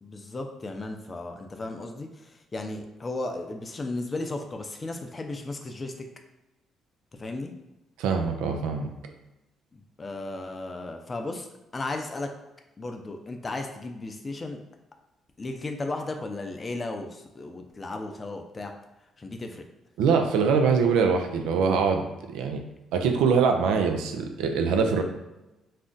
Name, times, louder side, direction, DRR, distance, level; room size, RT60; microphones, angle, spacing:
voice 1, 0.0-2.1 2.5-5.9 7.2-7.5 9.7-11.5 11.7-12.3 12.8-14.6 15.4-18.7 19.2-19.6, left 2 dB, 35° left, 4 dB, 0.4 m, -35 dB
voice 2, 8.0-8.9 20.0-22.6 22.9-25.0, right 5 dB, 80° right, 4 dB, 0.3 m, -23 dB
2.5 x 2.1 x 3.7 m, 0.99 s
supercardioid pair, 55°, 0 cm